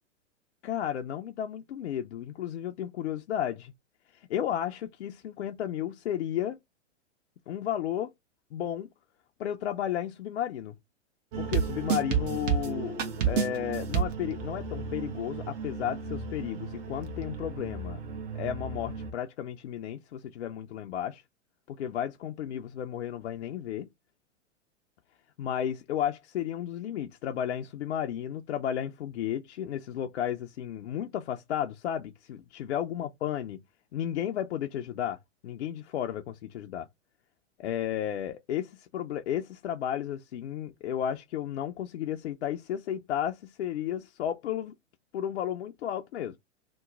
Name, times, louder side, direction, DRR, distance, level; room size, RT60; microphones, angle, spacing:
voice 1, 0.6-3.7 4.3-6.6 7.5-8.1 8.5-8.9 9.4-10.7 11.4-13.0 13.3-18.0 18.3-21.2 21.7-23.9 25.4-33.6 33.9-35.2 35.4-36.9 37.6-44.7 45.1-46.4, left 10 dB, 65° left, 0.5 m, -33 dB
sound 1, 11.3-19.1, right 6 dB, 45° right, 1.0 m, -32 dB
3.0 x 2.2 x 3.7 m
hypercardioid pair, 110°, 37 cm